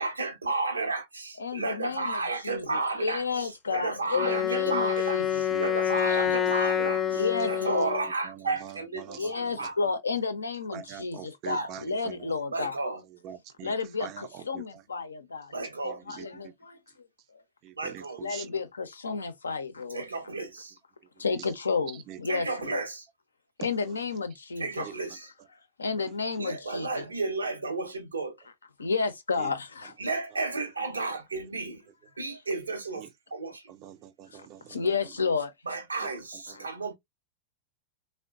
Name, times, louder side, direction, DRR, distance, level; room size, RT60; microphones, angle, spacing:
voice 1, 0.0-9.7 11.5-11.7 12.5-13.0 15.5-16.0 17.8-18.2 19.9-20.7 22.3-23.0 24.6-25.3 26.4-28.4 30.0-31.8 32.2-33.6 35.7-36.9, right 3 dB, 75° right, 0.7 m, -33 dB
voice 2, 1.4-5.4 7.1-8.0 9.2-12.8 13.6-15.5 16.1-17.1 17.3-17.4 18.2-20.0 21.2-22.7 23.6-24.9 25.8-27.0 28.8-29.9 32.3-32.4 34.3-35.5 36.5-36.6, left 4 dB, 75° left, 0.5 m, -32 dB
Wind instrument woodwind instrument, 4.1-8.1, left 9 dB, 20° left, 0.6 m, -27 dB
voice 3, 10.7-11.8 13.2-13.7 14.0-14.1 17.8-18.0 18.3-18.4 24.8-24.9 33.8-34.6, right 10 dB, 40° right, 0.4 m, -42 dB
3.6 x 2.1 x 2.3 m
figure-of-eight pair, 90°, 0 cm